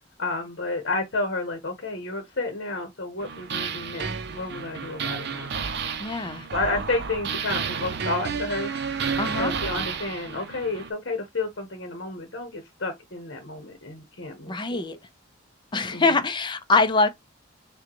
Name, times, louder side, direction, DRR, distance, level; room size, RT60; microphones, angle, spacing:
voice 1, 0.2-5.5 6.5-8.7 9.4-14.8 15.9-16.1, left 2 dB, 60° left, 1.0 m, -31 dB
sound 1, 3.2-10.9, right 6 dB, 55° right, 0.6 m, -31 dB
voice 2, 6.0-6.5 9.2-9.5 14.5-15.0 15.7-17.1, left 3 dB, 25° left, 0.6 m, -23 dB
6.3 x 2.3 x 3.0 m
head